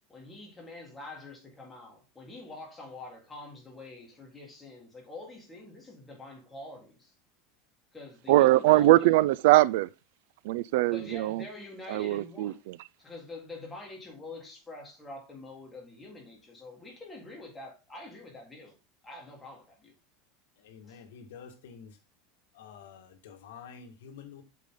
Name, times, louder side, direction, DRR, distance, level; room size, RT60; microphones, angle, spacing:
voice 1, 0.1-7.1 7.9-9.1 10.9-12.7 13.0-18.8 19.0-19.9 20.8-21.0, left 2 dB, 10° left, 3.7 m, -46 dB
voice 2, 8.3-9.9 10.4-11.4 11.9-12.7, right 17 dB, 70° right, 0.4 m, -22 dB
voice 3, 20.6-22.0 22.5-24.4, left 6 dB, 85° left, 2.0 m, -48 dB
8.3 x 6.8 x 3.8 m
supercardioid pair, 150°, 0 cm